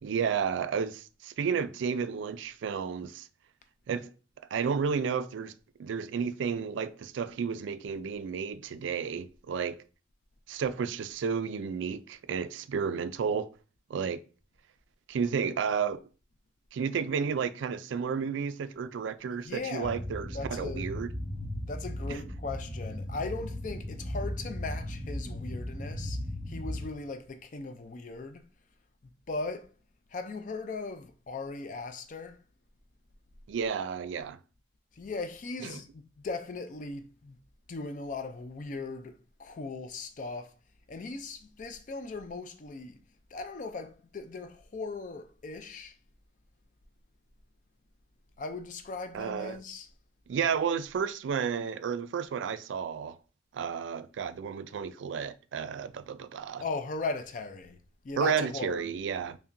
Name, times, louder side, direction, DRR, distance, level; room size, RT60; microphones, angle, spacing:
voice 1, 0.0-3.3 3.9-4.1 4.5-5.5 5.8-9.8 10.5-13.5 13.9-14.2 15.1-16.1 16.7-21.1 22.1-22.2 33.5-34.4 35.6-35.8 49.1-49.6 50.3-53.2 53.5-56.6 58.2-59.4, right 6 dB, 80° right, 0.3 m, -32 dB
voice 2, 19.3-20.0 20.3-20.9 21.7-26.2 26.5-28.4 29.3-29.7 30.1-32.4 34.9-37.4 37.7-40.5 40.9-43.0 43.3-45.9 48.4-49.9 56.6-57.8 58.0-59.1, left 3 dB, 45° left, 0.4 m, -38 dB
sound 1, 19.8-26.9, left 1 dB, 5° left, 1.0 m, -37 dB
5.4 x 2.1 x 2.5 m
head